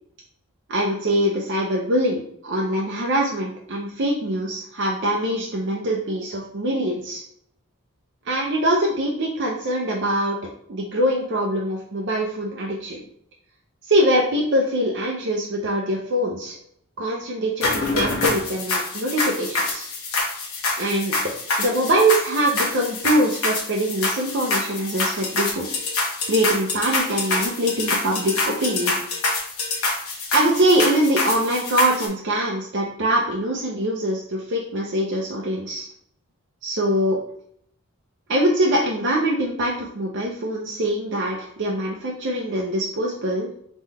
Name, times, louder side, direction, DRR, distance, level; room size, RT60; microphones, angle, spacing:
voice 1, 0.7-7.2 8.3-10.4 10.7-13.0 13.9-16.6 17.0-19.9 20.8-21.2 21.6-25.7 26.3-29.0 30.3-35.9 36.6-37.2 38.3-43.5, right 1 dB, 55° right, -2 dB, 0.6 m, -23 dB
sound 1, 17.6-32.1, left 3 dB, 80° left, 1.1 m, -26 dB
3.8 x 3.0 x 4.1 m, 0.69 s
head